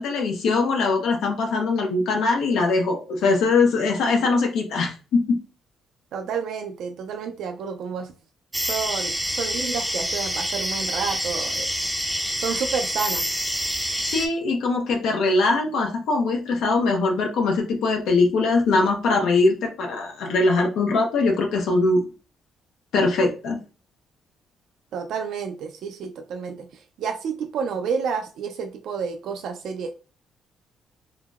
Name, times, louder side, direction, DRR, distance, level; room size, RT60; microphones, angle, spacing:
voice 1, 0.0-5.4 14.0-22.0 22.9-23.6, left 3 dB, 80° left, 1 dB, 0.5 m, -21 dB
voice 2, 6.1-8.1 8.6-11.7 12.4-13.3 24.9-29.9, right 6 dB, 75° right, 5 dB, 0.3 m, -30 dB
sound 1, 8.5-14.3, equal, 5° right, 0.5 m, -27 dB
3.7 x 2.0 x 2.3 m, 0.34 s
cardioid pair, 90°, 0 cm